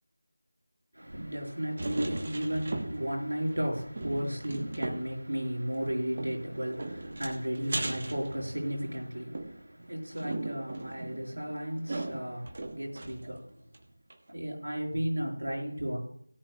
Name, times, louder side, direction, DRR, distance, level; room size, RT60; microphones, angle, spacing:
voice 1, 0.9-13.6 14.3-16.0, equal, 90° right, -1 dB, 5.5 m, -34 dB
sound 1, 1.8-3.2 3.5-3.6 3.9-5.2 6.2-8.9 9.3-13.4 13.7-13.8 14.1-14.2, right 2 dB, 35° right, 1.1 m, -38 dB
17.5 x 10.5 x 2.3 m, 0.66 s
figure-of-eight pair, 175°, 0 cm